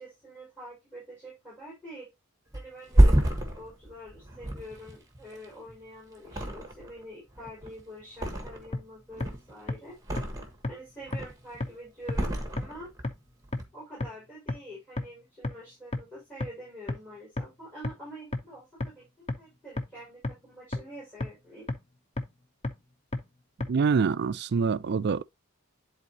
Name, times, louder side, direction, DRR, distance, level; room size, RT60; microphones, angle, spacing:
voice 1, 0.0-2.1 2.5-3.2 3.6-9.9 10.7-12.9 13.7-19.1 19.4-21.7, equal, 10° left, 5.2 m, -46 dB
Thump thud, 2.5-5.8 6.2-7.0 7.3-8.8 9.1-10.7 11.0-11.6 12.1-13.1 13.4-13.6, right 1 dB, 15° right, 1.3 m, -27 dB
sound 1, 8.7-8.8 9.2-9.3 9.7-9.8 10.2-10.3 10.6-10.7 11.1-11.2 11.6-11.7 12.1-12.2 12.6-12.7 13.0-13.1 13.5-13.6 14.0-14.1 14.5-14.6 15.0-15.1 15.4-15.5 15.9-16.0 16.4-16.5 16.9-17.0 17.4-17.5 17.8-17.9 18.3-18.4 18.8-18.9 19.3-19.4 19.8-19.9 20.2-20.3 20.7-20.8 21.2-21.3 21.7-21.8 22.2-22.3 22.6-22.7 23.1-23.2 23.6-23.7, left 2 dB, 25° left, 0.8 m, -29 dB
voice 2, 23.7-25.2, right 5 dB, 50° right, 0.4 m, -25 dB
10.5 x 4.1 x 2.8 m
head